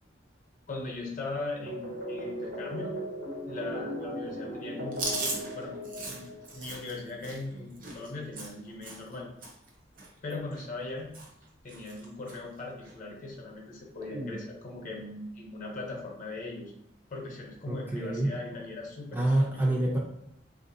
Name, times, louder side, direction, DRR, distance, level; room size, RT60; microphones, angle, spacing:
voice 1, 0.7-2.9 3.5-5.7 6.1-6.3 6.5-9.3 10.2-11.1 11.6-16.7 17.1-19.3, left 2 dB, 45° left, -1 dB, 0.8 m, -39 dB
sound 1, 1.7-6.8, equal, 85° right, 1.2 m, -37 dB
Chewing mastication, 4.9-9.2 9.4-9.7 10.0-10.9 11.1-11.4 11.7-12.4 12.8-12.9 14.0-14.4, right 2 dB, 50° right, 0.7 m, -38 dB
voice 2, 17.7-18.3 19.1-20.0, right 1 dB, 10° right, -3 dB, 0.4 m, -26 dB
3.3 x 2.5 x 2.7 m, 0.78 s
head